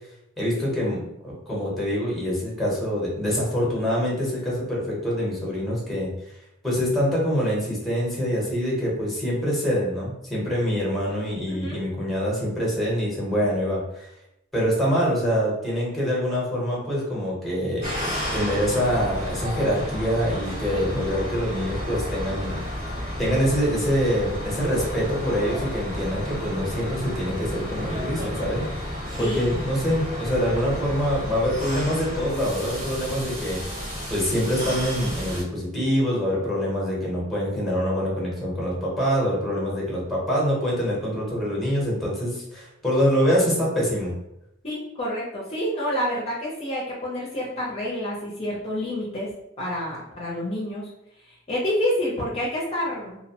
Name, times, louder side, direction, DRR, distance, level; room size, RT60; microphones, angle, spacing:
voice 1, 0.4-6.1 6.6-14.1 14.5-17.9 18.3-22.6 23.2-28.9 29.2-33.8 34.1-44.1, equal, ahead, -4 dB, 0.9 m, -25 dB
voice 2, 11.5-11.8 20.7-20.8 29.2-29.5 44.6-49.3 49.6-50.9 51.5-53.2, left 1 dB, 30° left, -6 dB, 0.5 m, -28 dB
sound 1, 17.8-35.4, equal, 75° right, 1.3 m, -32 dB
2.6 x 2.0 x 2.8 m, 0.84 s
head